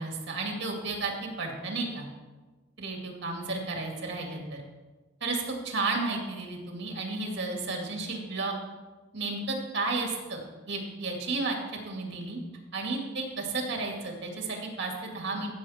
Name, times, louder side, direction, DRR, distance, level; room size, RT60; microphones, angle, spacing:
voice 1, 0.0-2.1 2.8-4.6 5.2-8.6 9.1-10.4 10.7-11.6 11.9-12.4 12.7-15.5, right 3 dB, 60° right, 1 dB, 2.2 m, -32 dB
15.5 x 6.5 x 4.3 m, 1.3 s
head